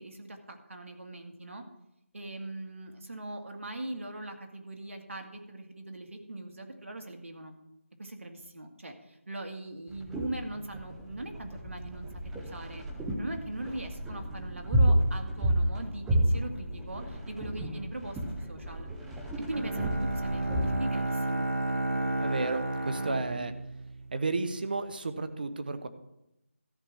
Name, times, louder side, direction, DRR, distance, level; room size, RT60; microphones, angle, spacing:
voice 1, 0.0-1.6 2.1-7.5 8.0-12.8 13.2-18.2 18.5-18.9 19.4-21.5, right 2 dB, 70° right, 3 dB, 2.0 m, -41 dB
sound 1, 9.9-20.8, right 1 dB, ahead, 0.4 m, -31 dB
Bowed string instrument, 19.5-24.5, right 2 dB, 90° right, 1.5 m, -32 dB
voice 2, 22.2-23.5 24.1-25.9, right 3 dB, 40° right, 9 dB, 1.0 m, -32 dB
13.5 x 4.9 x 7.5 m, 0.84 s
figure-of-eight pair, 170°, 7 cm